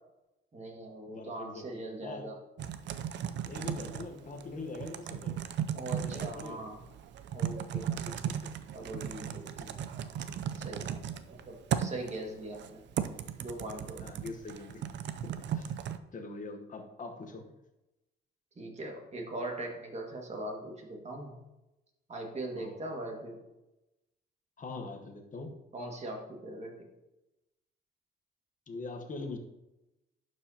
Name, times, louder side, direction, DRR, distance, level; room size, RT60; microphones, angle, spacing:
voice 1, 0.5-2.4 5.7-6.8 7.3-8.2 8.7-9.5 9.9-11.0 11.3-12.8 13.4-14.1 18.6-21.4 22.1-23.4 25.7-26.9, right 1 dB, 35° right, 0 dB, 1.9 m, -41 dB
voice 2, 1.1-2.3 3.4-5.4 6.0-6.6 7.7-8.5 9.2-9.9 14.0-14.8 15.2-15.8 16.1-17.5 22.6-22.8 24.6-25.6 28.7-29.4, left 3 dB, 40° left, 3 dB, 1.1 m, -43 dB
Typing, 2.6-16.0, right 9 dB, 65° right, 0.5 m, -36 dB
11.0 x 4.8 x 2.8 m, 0.96 s
cardioid pair, 90°, 20 cm